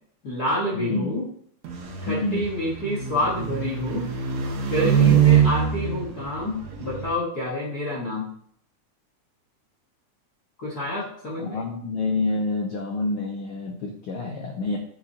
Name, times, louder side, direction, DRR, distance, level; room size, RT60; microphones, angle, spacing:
voice 1, 0.2-1.2 2.0-4.1 4.6-8.3 10.6-11.6, left 1 dB, 40° left, -5 dB, 1.5 m, -28 dB
voice 2, 0.7-1.1 2.1-2.4 4.8-5.2 11.4-14.8, left 3 dB, 85° left, 2 dB, 1.2 m, -27 dB
sound 1, 1.6-7.1, right 9 dB, 65° right, 2.4 m, -23 dB
8.7 x 6.8 x 2.9 m, 0.64 s
omnidirectional pair, 3.5 m